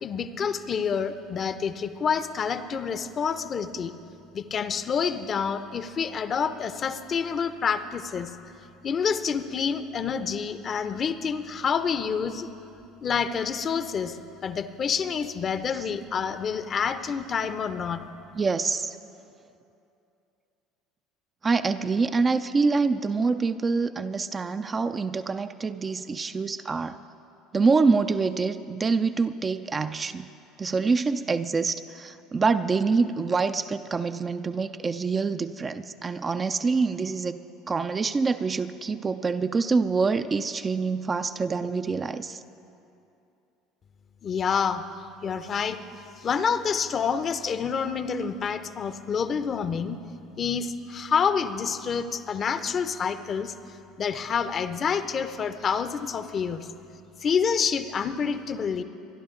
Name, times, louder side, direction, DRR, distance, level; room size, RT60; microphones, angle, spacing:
voice 1, 0.0-3.9 4.3-8.3 8.8-12.5 13.0-14.2 14.4-18.0 44.2-44.8 45.2-45.8 46.2-50.0 50.4-53.5 54.0-56.7 57.2-58.8, left 6 dB, 40° left, 11 dB, 0.8 m, -28 dB
voice 2, 18.4-19.0 21.4-27.0 27.5-30.3 30.6-37.4 37.7-42.4, right 4 dB, 30° right, 9 dB, 0.5 m, -26 dB
25.0 x 11.0 x 3.9 m, 2.7 s
hypercardioid pair, 70°, 0 cm